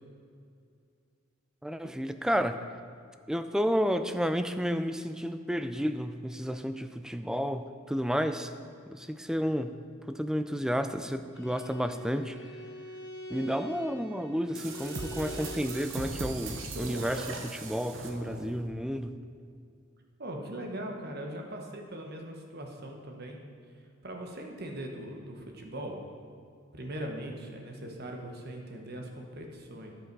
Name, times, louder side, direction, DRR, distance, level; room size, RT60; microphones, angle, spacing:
voice 1, 1.6-2.6 3.3-8.5 8.9-9.8 10.1-12.4 13.3-19.2, equal, 5° right, 9 dB, 0.3 m, -31 dB
Bowed string instrument, 11.3-16.0, equal, 60° left, 1.2 m, -44 dB
sound 1, 14.5-18.7, right 3 dB, 70° right, 1.0 m, -39 dB
voice 2, 20.2-23.4 23.7-26.0 26.7-29.9, right 1 dB, 50° right, 2 dB, 1.3 m, -40 dB
10.0 x 8.0 x 4.7 m, 2.3 s
head